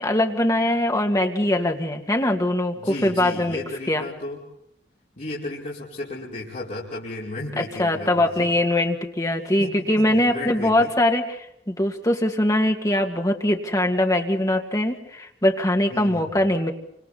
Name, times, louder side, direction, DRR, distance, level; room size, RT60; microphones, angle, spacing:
voice 1, 0.0-3.6 3.9-4.0 7.6-16.7, left 1 dB, 20° left, 3 dB, 2.3 m, -22 dB
voice 2, 2.7-4.4 5.2-8.5 9.6-10.9 15.9-16.4, left 2 dB, 45° left, -6 dB, 5.0 m, -34 dB
29.0 x 26.0 x 4.3 m, 0.77 s
head